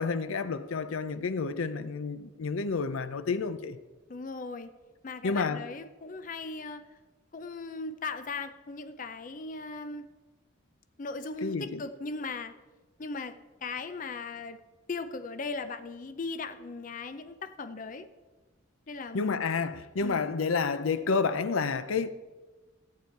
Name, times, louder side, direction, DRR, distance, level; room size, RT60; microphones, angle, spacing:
voice 1, 0.0-3.8 5.2-5.6 11.4-11.8 19.1-22.1, left 4 dB, 85° left, 0.6 m, -30 dB
voice 2, 4.1-4.7 5.0-6.9 7.3-10.1 11.0-12.5 13.0-14.6 14.9-18.1 18.9-19.4 20.0-20.3, left 3 dB, 40° left, 0.5 m, -38 dB
14.0 x 8.8 x 4.6 m
head